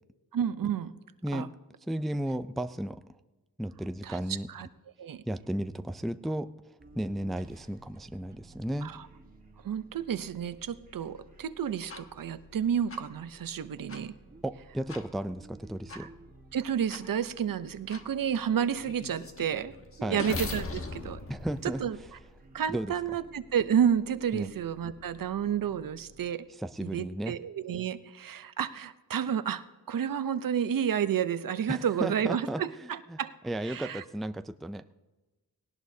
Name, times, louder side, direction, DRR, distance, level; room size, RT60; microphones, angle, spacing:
voice 1, 0.3-0.9 1.3-1.5 4.0-4.2 4.5-4.7 5.0-5.2 8.8-9.1 9.6-14.1 15.9-16.1 16.5-19.8 20.0-21.2 21.6-22.0 22.5-26.5 26.8-33.3 33.7-34.0, right 8 dB, 70° right, 13 dB, 0.7 m, -30 dB
voice 2, 1.9-3.0 3.6-4.5 5.3-6.5 6.9-8.9 14.4-16.1 20.0-20.2 21.3-21.8 22.7-22.9 24.3-24.5 26.6-27.4 31.7-33.2 33.4-34.9, right 1 dB, ahead, 10 dB, 0.4 m, -34 dB
sound 1, 6.8-26.3, right 2 dB, 25° right, 1.6 m, -55 dB
sound 2, 11.9-12.0 12.9-13.0 13.9-14.0 14.9-15.0 15.9-16.0 16.9-17.0 17.9-18.0 18.6-22.5, left 3 dB, 40° left, 1.3 m, -39 dB
19.0 x 18.0 x 2.7 m, 1.2 s
wide cardioid pair, 120°, 35 cm